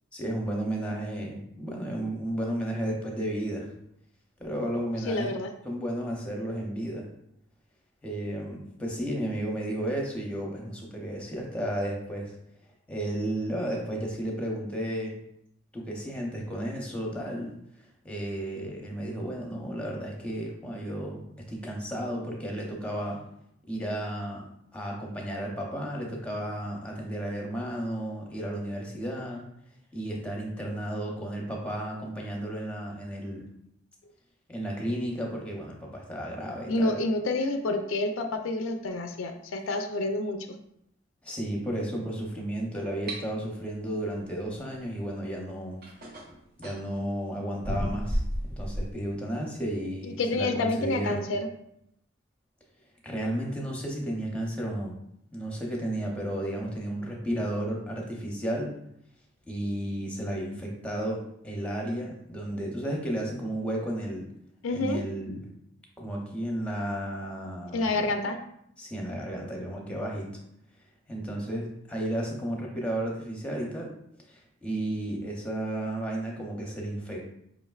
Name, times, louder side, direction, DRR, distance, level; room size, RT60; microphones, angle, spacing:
voice 1, 0.1-3.7 4.4-5.3 5.6-7.1 8.0-12.3 12.9-15.2 15.7-17.5 18.0-21.2 21.5-23.2 23.7-24.4 24.7-29.4 29.9-33.4 34.5-37.0 41.2-45.8 46.6-48.2 48.5-51.2 53.0-54.9 55.3-58.7 59.5-64.3 64.7-65.5 66.0-68.0 68.8-70.3 71.1-73.9 74.3-77.2, right 1 dB, 5° left, -1 dB, 0.7 m, -33 dB
voice 2, 5.1-5.5 36.7-40.6 50.0-51.5 64.6-65.0 67.7-68.4, left 2 dB, 80° left, 6 dB, 0.4 m, -28 dB
sound 1, 43.1-43.2 45.1-45.2 45.8-46.9 47.6-48.9, equal, 50° right, 0.7 m, -32 dB
4.9 x 3.2 x 2.3 m, 0.76 s
head